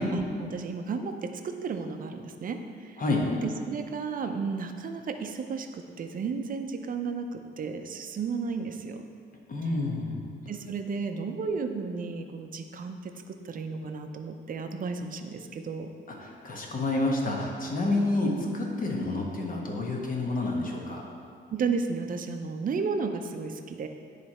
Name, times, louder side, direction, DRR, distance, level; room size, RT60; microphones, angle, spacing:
voice 1, 0.1-3.0 3.7-9.0 10.5-13.1 13.4-15.9 21.5-23.9, right 5 dB, 45° right, 6 dB, 0.6 m, -33 dB
voice 2, 3.0-3.3 9.5-10.2 16.1-21.0, left 2 dB, 45° left, -1 dB, 1.3 m, -29 dB
9.9 x 3.3 x 4.3 m, 2.3 s
cardioid pair, 90°, 20 cm